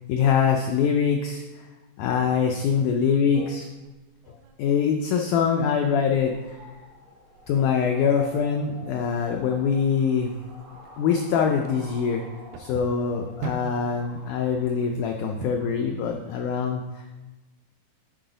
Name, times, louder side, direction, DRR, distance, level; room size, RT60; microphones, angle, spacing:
voice 1, 0.1-1.7 2.0-3.7 4.6-6.6 7.5-10.3 11.0-12.2 12.6-17.2, left 6 dB, 85° left, 3 dB, 1.8 m, -24 dB
sound 1, 3.7-15.9, right 5 dB, 90° right, 2.5 m, -44 dB
sound 2, 6.1-15.8, right 1 dB, 45° right, 1.0 m, -48 dB
10.5 x 4.7 x 3.9 m, 1.1 s
omnidirectional pair, 4.2 m